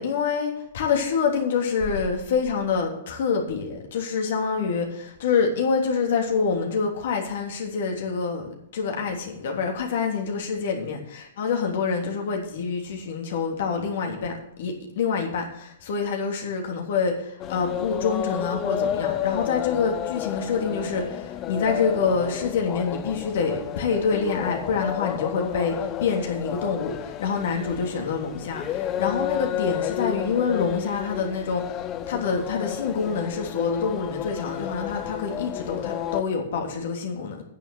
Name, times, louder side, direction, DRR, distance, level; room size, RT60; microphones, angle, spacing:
voice 1, 0.0-31.6 32.1-37.4, left 5 dB, 65° left, 1 dB, 3.2 m, -26 dB
sound 1, 17.4-36.2, left 10 dB, 30° left, 0.8 m, -31 dB
9.9 x 7.2 x 8.8 m, 0.78 s
hypercardioid pair, 115°, 0 cm